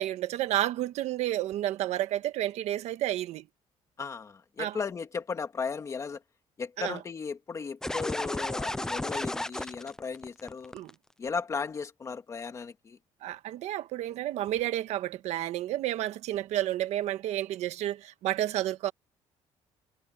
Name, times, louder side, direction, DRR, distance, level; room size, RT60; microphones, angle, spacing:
voice 1, 0.0-3.5 4.6-4.8 6.8-7.0 10.7-10.9 13.2-18.9, right 13 dB, 75° right, 1.5 m, -31 dB
voice 2, 4.0-6.2 6.6-10.7 11.2-13.0, left 5 dB, 25° left, 2.0 m, -36 dB
sound 1, 7.8-10.9, left 1 dB, 5° left, 0.5 m, -33 dB
cardioid pair, 155°, 12 cm